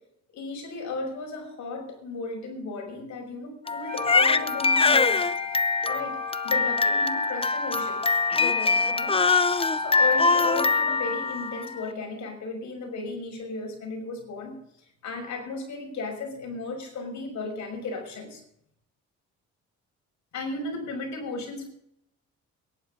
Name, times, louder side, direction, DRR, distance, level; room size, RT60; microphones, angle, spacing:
voice 1, 0.3-5.3 5.8-9.2 9.8-14.6 15.0-18.4 20.3-21.7, left 3 dB, 70° left, 2 dB, 5.9 m, -35 dB
Crying sobbing, 3.7-11.8, left 4 dB, 20° left, 0.7 m, -23 dB
Wind instrument woodwind instrument, 3.9-10.8, left 7 dB, 35° right, 3.3 m, -39 dB
22.5 x 11.0 x 3.8 m, 0.75 s
cardioid pair, 90°, 30 cm